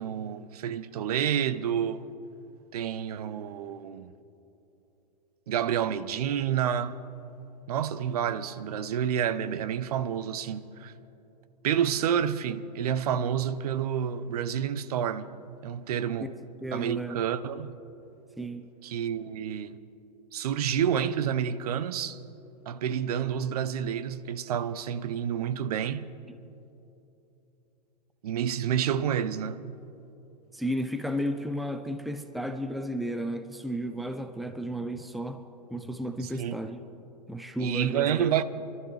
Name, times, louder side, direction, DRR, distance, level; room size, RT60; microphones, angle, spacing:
voice 1, 0.0-2.1 2.7-4.1 5.5-7.0 7.7-10.9 11.6-15.3 15.6-16.3 16.7-17.8 18.8-19.8 20.3-22.2 22.7-26.1 28.2-29.6 36.4-36.6 37.6-38.4, right 9 dB, 65° right, 0.8 m, -29 dB
voice 2, 16.6-17.2 18.4-18.7 26.3-26.4 30.5-35.4 35.7-36.8 37.3-38.3, equal, ahead, 0.7 m, -33 dB
28.5 x 12.5 x 3.4 m
hypercardioid pair, 105°, 21 cm